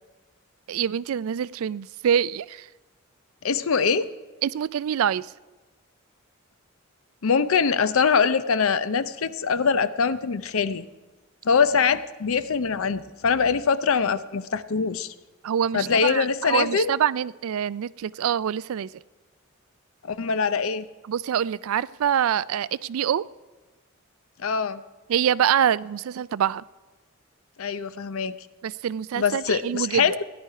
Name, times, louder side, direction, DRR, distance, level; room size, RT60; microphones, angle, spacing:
voice 1, 0.7-2.7 4.4-5.3 15.4-18.9 21.1-23.2 25.1-26.6 28.6-30.1, right 9 dB, 75° right, 20 dB, 0.3 m, -25 dB
voice 2, 3.4-4.1 7.2-10.9 11.4-15.1 15.7-16.9 20.0-20.9 24.4-24.8 27.6-28.4 29.1-30.2, left 5 dB, 70° left, 14 dB, 0.6 m, -23 dB
16.0 x 10.5 x 4.8 m, 1.2 s
head